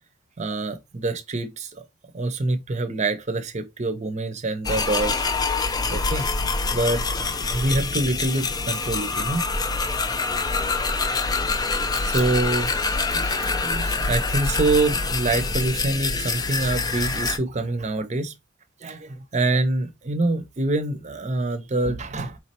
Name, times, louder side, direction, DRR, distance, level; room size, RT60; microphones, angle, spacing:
voice 1, 0.4-1.8 2.1-5.2 5.9-6.3 6.7-7.0 7.5-9.4 12.0-18.3 18.8-22.4, right 2 dB, 35° right, 0.7 m, -25 dB
sound 1, 4.7-17.4, left 3 dB, 20° left, 0.4 m, -25 dB
4.7 x 3.2 x 2.9 m
head